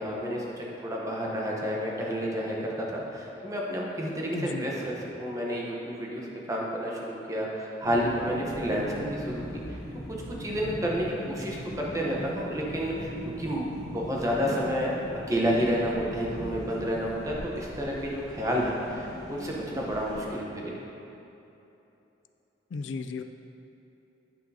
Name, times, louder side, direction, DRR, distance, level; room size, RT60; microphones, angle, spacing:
voice 1, 0.0-9.8 10.1-13.1 13.4-14.9 15.3-20.8, equal, 20° right, -3 dB, 0.9 m, -30 dB
voice 2, 4.3-4.7 22.7-23.2, left 4 dB, 80° left, 8 dB, 0.3 m, -34 dB
sound 1, 7.8-20.3, equal, 60° left, 1.2 m, -40 dB
9.3 x 5.9 x 2.8 m, 3.0 s
head